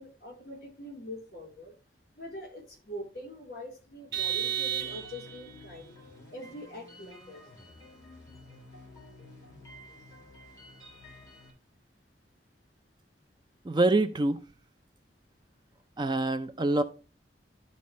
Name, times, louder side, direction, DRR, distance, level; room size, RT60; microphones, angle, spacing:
voice 1, 0.0-1.7 2.2-5.9 6.3-7.4, equal, 55° left, 3.5 m, -43 dB
sound 1, 4.1-11.5, left 1 dB, 20° left, 3.7 m, -51 dB
Vehicle horn car horn honking, 4.1-5.5, right 10 dB, 60° right, 1.2 m, -32 dB
voice 2, 13.6-14.4 16.0-16.8, right 2 dB, 25° right, 0.4 m, -25 dB
12.0 x 4.2 x 3.1 m
head